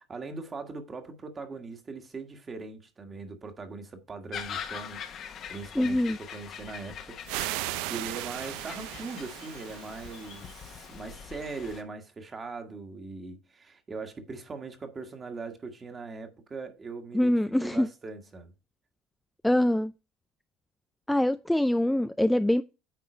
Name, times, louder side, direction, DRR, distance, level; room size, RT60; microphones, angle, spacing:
voice 1, 0.0-5.0 5.5-7.2 7.8-18.5, right 4 dB, 25° right, 1.5 m, -40 dB
sound 1, 4.3-11.8, left 8 dB, 45° left, 1.1 m, -42 dB
voice 2, 5.8-6.2 17.1-17.9 19.4-19.9 21.1-22.6, left 1 dB, 5° left, 0.3 m, -24 dB
sound 2, 7.3-10.9, right 17 dB, 80° right, 0.4 m, -37 dB
9.2 x 3.8 x 4.4 m
cardioid pair, 130°, 0 cm